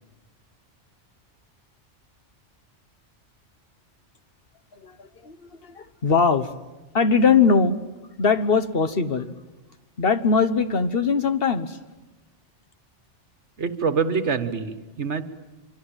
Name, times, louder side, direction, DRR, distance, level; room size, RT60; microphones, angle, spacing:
voice 1, 4.8-6.5 6.9-7.8 8.2-9.3 10.0-11.8, left 5 dB, 55° left, 10 dB, 1.3 m, -21 dB
voice 2, 13.6-15.2, right 5 dB, 70° right, 10 dB, 1.7 m, -25 dB
25.0 x 25.0 x 9.0 m, 1.1 s
omnidirectional pair, 1.2 m